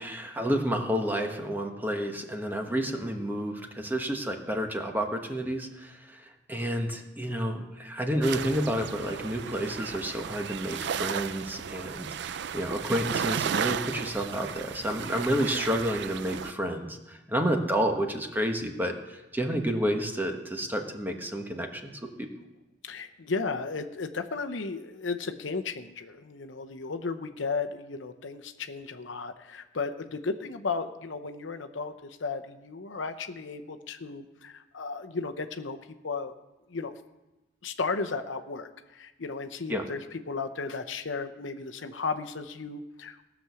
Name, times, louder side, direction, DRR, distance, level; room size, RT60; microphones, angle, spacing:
voice 1, 0.0-21.9 22.2-22.3 39.7-39.8, equal, 10° right, 4 dB, 1.2 m, -30 dB
sound 1, 8.2-16.5, right 8 dB, 65° right, 0.4 m, -34 dB
voice 2, 22.8-35.8 36.0-36.3 36.7-36.9 37.6-43.2, left 4 dB, 85° left, 7 dB, 0.8 m, -34 dB
18.0 x 6.2 x 7.0 m, 1.0 s
head